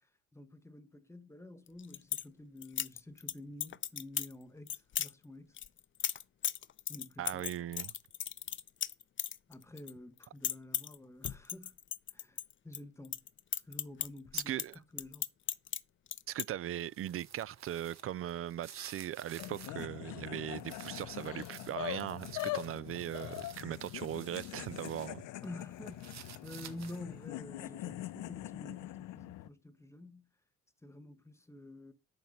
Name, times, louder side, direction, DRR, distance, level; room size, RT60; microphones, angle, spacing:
voice 1, 0.3-5.6 6.9-7.5 9.5-11.7 12.1-12.4 12.6-13.3 13.7-14.6 14.9-15.2 25.4-30.3 30.8-31.9, left 1 dB, 10° left, 1.2 m, -49 dB
sound 1, 1.7-2.2 2.6-3.3 3.6-4.3 4.7-5.1 5.6-9.9 10.2-10.9 11.2-12.8 13.0-15.8 16.1-16.4, left 9 dB, 40° left, 0.6 m, -36 dB
voice 2, 7.2-7.9 14.3-14.7 16.3-25.3, right 12 dB, 50° right, 0.4 m, -39 dB
sound 2, 16.7-19.8 20.3-25.1 25.4-27.2, right 9 dB, 65° right, 1.4 m, -54 dB
sound 3, 19.4-29.5, left 16 dB, 85° left, 0.6 m, -43 dB
9.3 x 5.9 x 5.5 m
cardioid pair, 90°, 30 cm